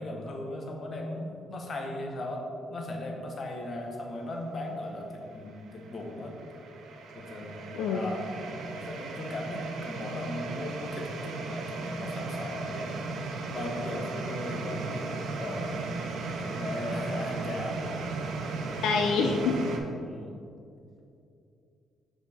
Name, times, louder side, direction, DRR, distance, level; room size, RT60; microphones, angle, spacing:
voice 1, 0.0-6.4 7.1-8.3 8.8-13.0 13.5-15.8 16.4-18.1 20.0-20.3, left 1 dB, 45° left, 1 dB, 1.1 m, -37 dB
sound 1, 5.1-19.8, right 3 dB, 75° right, 0.7 m, -36 dB
voice 2, 18.8-19.7, left 4 dB, 90° left, 3 dB, 0.4 m, -26 dB
6.0 x 5.2 x 3.4 m, 2.6 s
cardioid pair, 90°, 0 cm